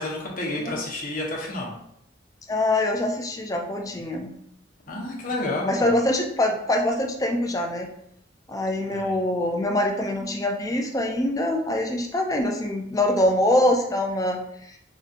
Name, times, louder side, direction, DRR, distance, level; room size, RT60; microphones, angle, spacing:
voice 1, 0.0-1.7 4.9-5.9 8.9-9.2, left 2 dB, 45° left, -2 dB, 1.0 m, -30 dB
voice 2, 2.5-4.3 5.6-7.9 8.5-14.4, left 1 dB, 20° left, 2 dB, 0.4 m, -24 dB
4.9 x 2.7 x 2.5 m, 0.74 s
head